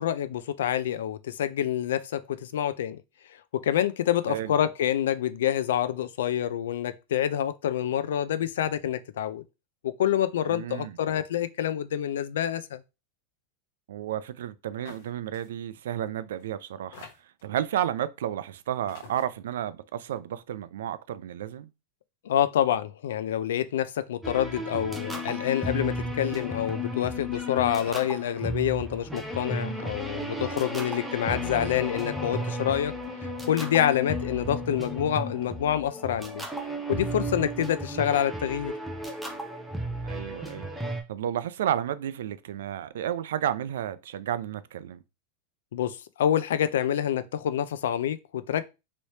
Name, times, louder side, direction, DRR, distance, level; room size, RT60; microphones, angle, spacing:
voice 1, 0.0-3.0 3.5-9.4 9.8-12.8 22.2-32.9 33.5-36.5 36.9-38.7 45.7-48.7, left 10 dB, 90° left, 0.4 m, -27 dB
voice 2, 10.5-11.0 13.9-17.0 17.4-21.7 40.0-40.7 41.1-45.0, right 11 dB, 85° right, 0.3 m, -32 dB
sound 1, 14.9-15.1 15.3-15.5 16.4-16.5 16.9-17.5 18.4-18.5 18.9-19.2, left 5 dB, 60° left, 1.1 m, -46 dB
sound 2, 24.2-41.0, equal, ahead, 0.4 m, -34 dB
3.0 x 2.7 x 3.2 m
supercardioid pair, 170°, 0 cm